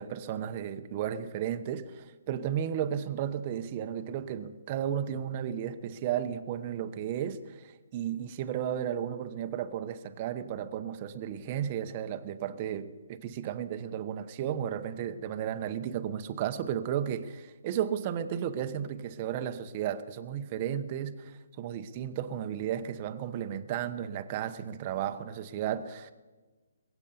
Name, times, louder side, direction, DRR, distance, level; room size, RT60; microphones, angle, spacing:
voice 1, 0.0-26.1, right 9 dB, 35° right, 0.9 m, -34 dB
21.5 x 8.2 x 6.9 m
hypercardioid pair, 145°, 0 cm